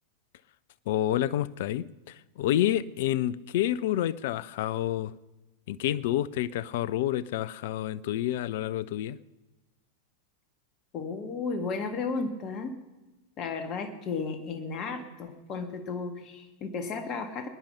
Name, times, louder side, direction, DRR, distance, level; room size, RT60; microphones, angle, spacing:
voice 1, 0.9-5.1 5.7-9.2, left 12 dB, 55° left, 0.5 m, -29 dB
voice 2, 10.9-12.7 13.4-17.5, left 4 dB, 35° left, 1.7 m, -34 dB
21.5 x 10.5 x 5.8 m
figure-of-eight pair, 90°, 0 cm